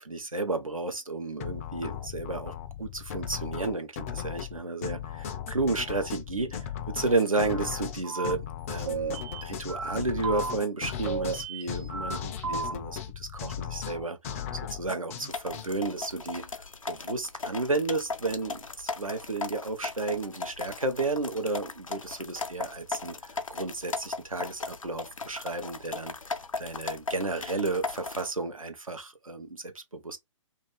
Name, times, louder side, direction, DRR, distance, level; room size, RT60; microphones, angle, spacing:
voice 1, 0.0-14.4 14.7-16.5 16.9-23.2 23.5-26.1 26.6-30.2, right 3 dB, 85° right, 0.8 m, -32 dB
sound 1, 1.4-15.7, left 9 dB, 25° left, 0.4 m, -37 dB
sound 2, 7.5-7.8 8.0-8.3 8.9-10.0 10.2-10.5 11.1-12.2 12.4-12.7, right 5 dB, 50° right, 1.1 m, -34 dB
sound 3, 15.3-28.3, left 4 dB, 80° left, 0.5 m, -37 dB
2.7 x 2.5 x 3.3 m
figure-of-eight pair, 125°, 17 cm